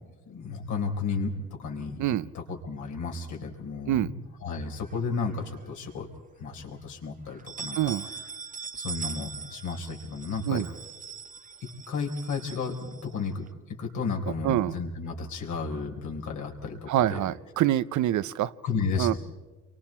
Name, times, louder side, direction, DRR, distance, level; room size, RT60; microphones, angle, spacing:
voice 1, 0.3-2.0 2.3-6.1 6.4-7.8 8.0-8.3 8.7-10.7 11.9-13.4 13.8-17.2 18.6-19.2, left 4 dB, 75° left, 1 dB, 4.1 m, -33 dB
sound 1, 4.8-5.7 6.1-6.2 6.6-6.7 7.3-13.5, right 6 dB, 25° right, 0.7 m, -41 dB
voice 2, 14.4-14.7 16.9-18.5 19.0-19.1, right 13 dB, 75° right, 16 dB, 0.7 m, -25 dB
29.5 x 23.5 x 4.4 m, 1.2 s
cardioid pair, 90°, 30 cm